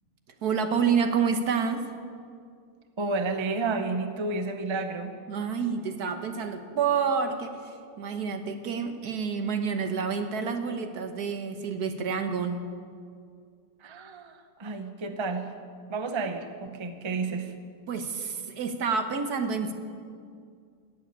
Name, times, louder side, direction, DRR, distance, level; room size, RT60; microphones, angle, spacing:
voice 1, 0.4-1.8 5.3-12.6 17.9-19.7, right 6 dB, 70° right, 7 dB, 1.6 m, -28 dB
voice 2, 3.0-5.1 13.8-15.5 15.9-17.5, right 3 dB, 25° right, 7 dB, 0.7 m, -31 dB
15.5 x 7.9 x 9.9 m, 2.2 s
omnidirectional pair, 1.8 m